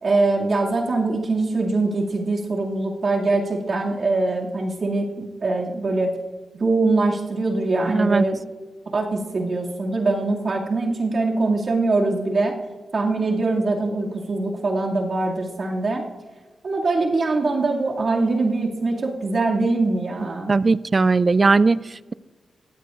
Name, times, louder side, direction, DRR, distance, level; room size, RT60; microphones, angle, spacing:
voice 1, 0.0-6.1 6.6-8.4 8.9-12.6 12.9-16.0 16.6-20.6, right 3 dB, 55° right, -1 dB, 2.4 m, -23 dB
voice 2, 7.9-8.2 20.5-22.1, right 3 dB, 40° right, 18 dB, 0.4 m, -18 dB
20.5 x 16.0 x 2.6 m, 1.3 s
cardioid pair, 70°, 0 cm